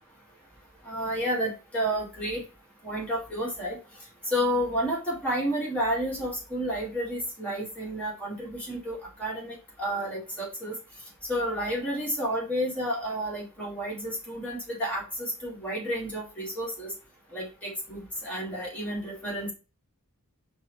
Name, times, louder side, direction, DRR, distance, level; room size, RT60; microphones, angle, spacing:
voice 1, 0.8-2.4 2.8-3.8 4.3-10.7 11.3-16.9 17.3-19.5, equal, 5° left, -5 dB, 1.5 m, -31 dB
5.0 x 2.2 x 3.0 m, 0.32 s
head